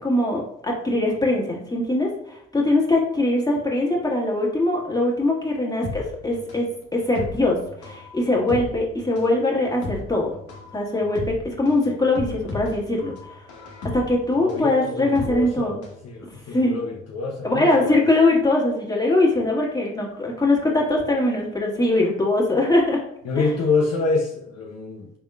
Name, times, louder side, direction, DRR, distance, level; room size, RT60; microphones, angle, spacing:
voice 1, 0.0-6.7 6.9-10.3 10.7-11.2 11.6-13.4 13.9-15.8 16.5-16.8 17.4-23.0 23.4-23.5, left 2 dB, 15° left, -3 dB, 1.6 m, -22 dB
sound 1, 5.8-16.0 16.3-16.4, left 3 dB, 70° left, 1.1 m, -35 dB
voice 2, 14.4-15.8 16.0-18.1 23.2-25.1, left 4 dB, 55° left, 0 dB, 0.7 m, -26 dB
4.5 x 3.5 x 2.4 m, 0.75 s
hypercardioid pair, 45°, 30 cm